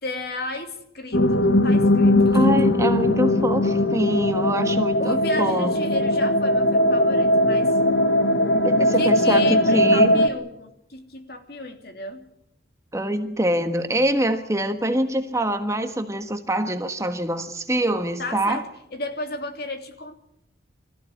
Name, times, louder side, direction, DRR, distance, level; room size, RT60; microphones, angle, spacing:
voice 1, 0.0-2.4 5.0-7.8 8.9-12.3 18.2-20.1, left 2 dB, 55° left, 6 dB, 2.9 m, -34 dB
sound 1, 1.1-10.3, left 1 dB, 80° left, 1.8 m, -19 dB
voice 2, 2.3-5.7 8.6-10.2 12.9-18.6, right 1 dB, 15° right, 7 dB, 1.4 m, -24 dB
26.0 x 15.0 x 9.9 m, 0.79 s
head